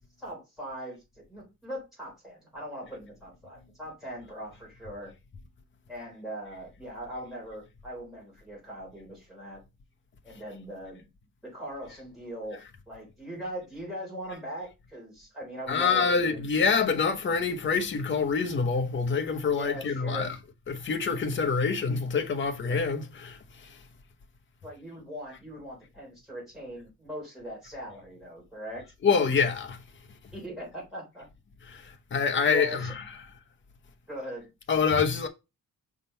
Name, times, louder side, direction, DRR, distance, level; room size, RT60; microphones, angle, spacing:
voice 1, 0.2-5.1 5.9-9.6 10.2-11.1 11.4-12.6 12.9-16.4 19.5-20.3 24.6-28.8 30.3-31.3 32.5-32.9 34.1-34.5, equal, ahead, 3.5 m, -40 dB
voice 2, 15.7-20.4 20.7-23.8 29.0-29.8 31.7-33.0 34.7-35.3, left 5 dB, 35° left, 0.8 m, -26 dB
5.7 x 3.6 x 5.4 m
cardioid pair, 170°, 34 cm